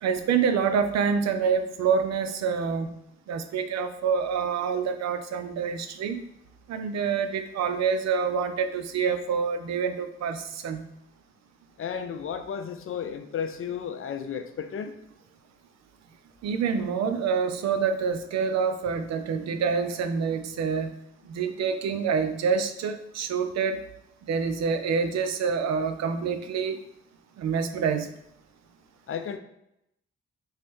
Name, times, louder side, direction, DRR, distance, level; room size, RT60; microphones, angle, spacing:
voice 1, 0.0-3.0 3.3-6.2 6.7-10.9 16.4-20.9 21.3-23.8 24.3-26.8 27.4-28.1, right 6 dB, 60° right, 8 dB, 0.5 m, -27 dB
voice 2, 11.8-14.9 29.1-29.4, left 7 dB, 45° left, 8 dB, 0.5 m, -33 dB
3.1 x 3.0 x 3.1 m, 0.81 s
supercardioid pair, 45°, 30 cm